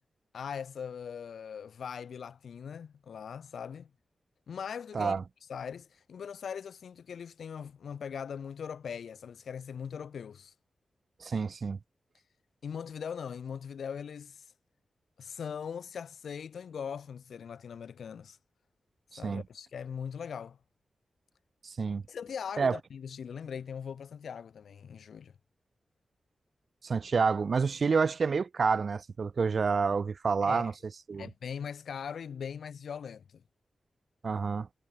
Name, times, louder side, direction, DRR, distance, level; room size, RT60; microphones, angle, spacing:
voice 1, 0.3-3.9 4.5-5.1 5.5-10.5 12.6-14.4 15.2-18.4 19.2-20.6 22.1-25.3 30.4-30.7 31.2-33.4, left 7 dB, 85° left, 0.5 m, -40 dB
voice 2, 11.2-11.8 19.1-19.4 21.6-22.0 22.6-22.8 26.8-30.7 31.1-31.3 34.2-34.7, right 5 dB, 55° right, 0.4 m, -28 dB
wide cardioid pair, 95°, 0 cm